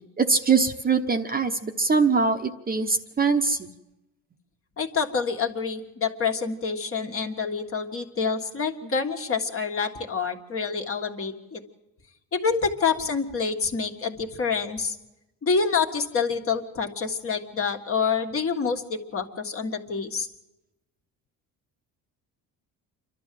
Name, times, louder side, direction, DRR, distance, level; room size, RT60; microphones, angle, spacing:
voice 1, 0.2-3.7, right 4 dB, 25° right, 6 dB, 1.0 m, -23 dB
voice 2, 4.8-11.6 12.3-15.0 15.4-20.3, left 5 dB, 35° left, 3 dB, 1.8 m, -27 dB
28.0 x 12.0 x 7.7 m, 0.96 s
cardioid pair, 120°, 36 cm